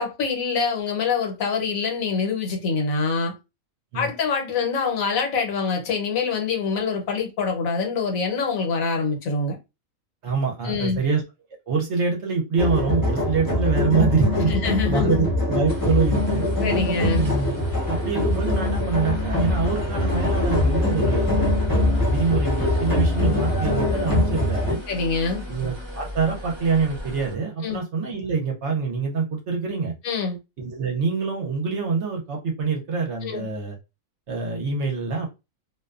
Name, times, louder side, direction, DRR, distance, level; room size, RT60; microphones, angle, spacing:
voice 1, 0.0-3.3 3.9-9.6 10.6-11.0 14.5-15.2 16.6-17.2 24.9-25.4 27.6-27.8 30.0-30.4 33.2-33.5, left 5 dB, 75° left, 1.2 m, -25 dB
voice 2, 10.2-11.2 11.7-14.5 14.9-16.5 17.1-17.5 17.9-24.8 25.5-29.9 30.6-33.8 34.3-35.3, right 4 dB, 65° right, 0.9 m, -25 dB
sound 1, 12.6-24.7, left 2 dB, 20° left, 0.7 m, -23 dB
sound 2, 15.7-27.3, left 3 dB, 25° right, 0.7 m, -35 dB
2.5 x 2.2 x 2.3 m
omnidirectional pair, 1.4 m